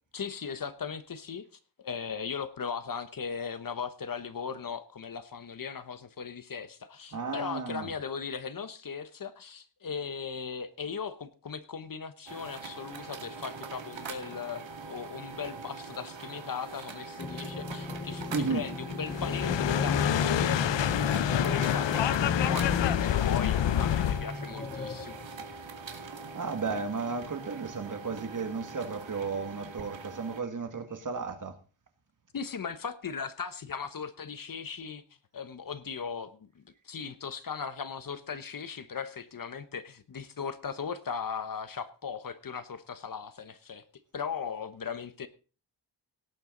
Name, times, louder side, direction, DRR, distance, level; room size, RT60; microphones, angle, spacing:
voice 1, 0.1-1.4 1.8-25.2 32.3-35.0 35.3-43.8 44.1-45.3, left 6 dB, 50° left, 1.1 m, -38 dB
voice 2, 7.1-7.9 18.3-18.7 26.3-31.6, right 4 dB, 45° right, 2.0 m, -34 dB
sound 1, 12.3-30.4, right 4 dB, 85° right, 2.3 m, -43 dB
sound 2, 17.2-25.9, left 3 dB, 20° left, 0.6 m, -35 dB
sound 3, 19.1-24.3, left 11 dB, 75° left, 0.7 m, -27 dB
17.5 x 9.0 x 3.9 m
wide cardioid pair, 140°, 44 cm